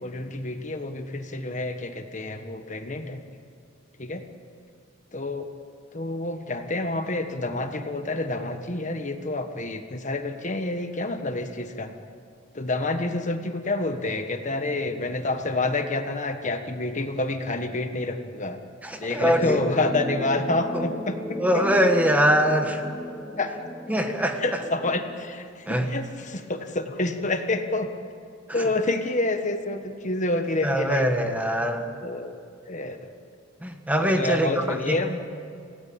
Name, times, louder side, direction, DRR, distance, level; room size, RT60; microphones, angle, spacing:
voice 1, 0.0-3.2 4.0-4.2 5.1-5.5 5.9-11.9 12.5-18.6 19.0-21.6 23.4-23.5 24.4-27.9 28.5-31.3 32.0-32.3 32.7-33.0 34.0-35.2, left 2 dB, 40° left, 7 dB, 1.4 m, -28 dB
voice 2, 18.8-19.6 20.7-20.8 21.4-22.8 23.9-24.4 25.7-25.9 28.5-28.7 30.6-31.8 33.6-35.0, equal, 10° right, 5 dB, 1.6 m, -23 dB
sound 1, 19.2-25.4, equal, 10° left, 2.5 m, -35 dB
27.0 x 18.0 x 8.8 m, 2.4 s
head